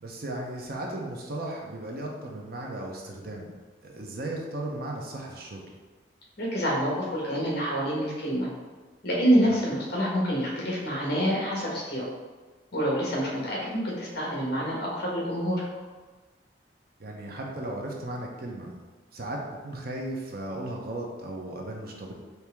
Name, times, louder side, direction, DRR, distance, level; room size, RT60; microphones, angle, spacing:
voice 1, 0.0-3.5 3.8-5.7 9.5-9.6 17.0-18.7 19.1-22.1, right 1 dB, 55° right, 0 dB, 0.7 m, -36 dB
voice 2, 6.4-8.5 9.0-12.1 12.7-15.6, equal, 55° left, -4 dB, 1.3 m, -27 dB
4.5 x 2.8 x 3.5 m, 1.3 s
head